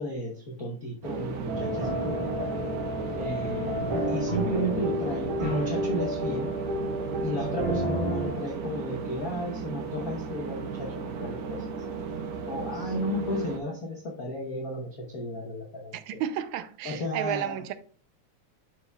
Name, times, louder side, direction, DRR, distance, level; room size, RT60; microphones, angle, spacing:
voice 1, 0.0-2.5 3.1-6.5 7.2-11.6 12.5-16.2 16.8-17.7, equal, 85° left, 0.7 m, -33 dB
sound 1, 1.0-13.6, right 5 dB, 70° right, 2.1 m, -35 dB
sound 2, 1.5-8.3, equal, 55° right, 3.8 m, -30 dB
voice 2, 15.9-17.7, right 10 dB, 85° right, 2.1 m, -32 dB
12.0 x 4.8 x 2.3 m
omnidirectional pair, 3.3 m